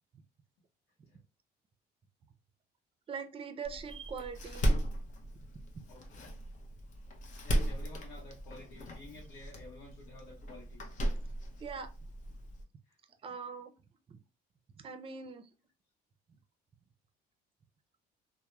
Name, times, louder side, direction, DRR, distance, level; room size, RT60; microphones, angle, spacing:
voice 1, 3.1-4.7 5.7-5.8 11.6-11.9 13.2-13.7 14.1-14.2 14.8-15.5, right 5 dB, 35° right, 0.4 m, -42 dB
Door, 3.6-12.6, right 1 dB, 45° left, 0.6 m, -36 dB
voice 2, 5.9-6.4 7.4-10.8 12.9-13.0, left 2 dB, 85° left, 0.7 m, -52 dB
2.9 x 2.0 x 2.2 m
cardioid pair, 110°, 17 cm